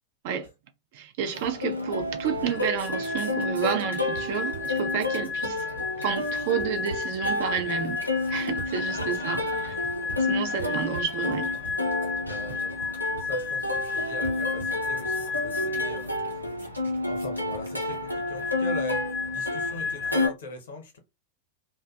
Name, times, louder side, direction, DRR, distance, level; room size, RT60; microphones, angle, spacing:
voice 1, 0.9-5.7 6.0-8.0 8.3-9.8 10.3-11.5, right 8 dB, 50° right, 0.5 m, -30 dB
Plucked string instrument, 1.3-20.3, left 1 dB, 90° left, 0.5 m, -31 dB
sound 1, 1.8-2.2 2.5-18.5, right 3 dB, 85° right, 0.8 m, -44 dB
sound 2, 2.5-16.2 18.1-20.3, left 5 dB, 20° left, 0.4 m, -33 dB
voice 2, 8.8-9.2 12.1-12.7 13.1-16.4 17.0-19.0 19.3-21.0, left 3 dB, 60° left, 0.8 m, -40 dB
2.5 x 2.2 x 2.3 m
figure-of-eight pair, 90°, 0 cm